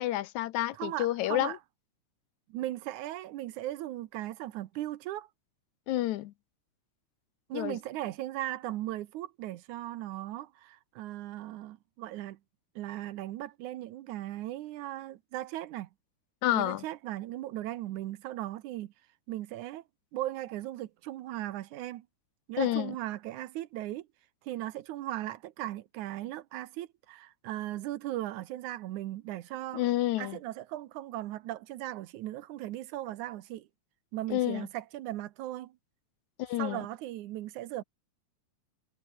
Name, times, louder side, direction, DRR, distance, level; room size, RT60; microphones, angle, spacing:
voice 1, 0.0-1.6 5.9-6.3 7.5-7.8 16.4-16.8 22.6-22.9 29.7-30.4 34.3-34.7 36.4-36.8, left 15 dB, 75° left, 2.0 m, -29 dB
voice 2, 0.7-1.6 2.5-5.3 7.5-12.4 12.8-15.9 16.5-18.9 19.3-19.8 20.1-22.1 22.5-24.1 24.4-29.9 30.2-33.7 34.1-35.8 36.6-37.8, right 14 dB, 75° right, 2.3 m, -38 dB
omnidirectional pair, 3.6 m